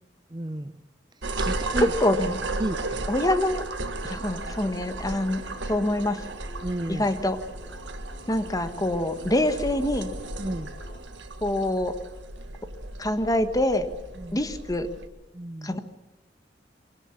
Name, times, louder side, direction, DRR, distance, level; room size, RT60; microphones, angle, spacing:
voice 1, 0.3-0.8 1.4-1.9 2.6-3.0 6.6-7.1 10.4-10.7 14.2-14.4 15.3-15.8, right 1 dB, 25° right, 0.7 m, -32 dB
sound 1, 1.2-15.1, right 2 dB, 85° right, 1.8 m, -35 dB
voice 2, 1.8-2.4 3.1-3.7 4.0-6.2 6.9-7.4 8.3-10.1 11.4-11.9 13.0-13.9 14.3-14.9 15.6-15.8, left 1 dB, 20° left, 1.4 m, -25 dB
sound 2, 2.0-11.0, left 1 dB, 45° left, 2.4 m, -49 dB
23.5 x 17.5 x 7.2 m
head